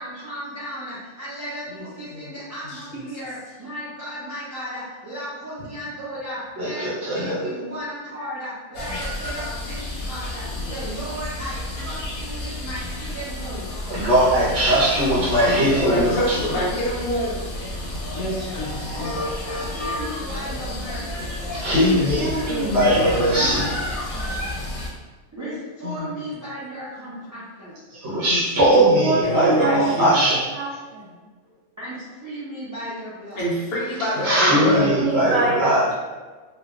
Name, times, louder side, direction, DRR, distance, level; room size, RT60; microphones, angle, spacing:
voice 1, 0.0-13.8 19.6-21.3 25.3-27.8 31.8-33.5, equal, 25° right, -10 dB, 0.4 m, -35 dB
voice 2, 1.7-2.4 2.6-2.7 10.5-10.8 14.6-14.9 15.2-16.6 18.1-19.8 22.3-23.7 25.8-26.1 28.3-28.4 28.7-30.4 34.1-34.3 34.6-35.4, left 3 dB, 70° left, -6 dB, 1.3 m, -31 dB
voice 3, 2.7-3.1 15.8-17.7 29.2-30.1 33.3-34.9, equal, 50° left, -6 dB, 0.9 m, -26 dB
voice 4, 6.6-7.6 8.9-9.0 13.9-16.4 18.9-19.1 21.5-22.4 22.7-23.7 27.9-30.5 34.0-35.9, right 1 dB, 55° right, -8 dB, 0.9 m, -20 dB
sound 1, 8.7-24.9, left 1 dB, 85° left, 1.1 m, -31 dB
voice 5, 22.1-23.5 28.6-30.0 30.5-31.2 34.7-35.9, right 3 dB, 80° right, -3 dB, 1.1 m, -26 dB
3.1 x 2.3 x 2.4 m, 1.3 s
omnidirectional pair, 1.5 m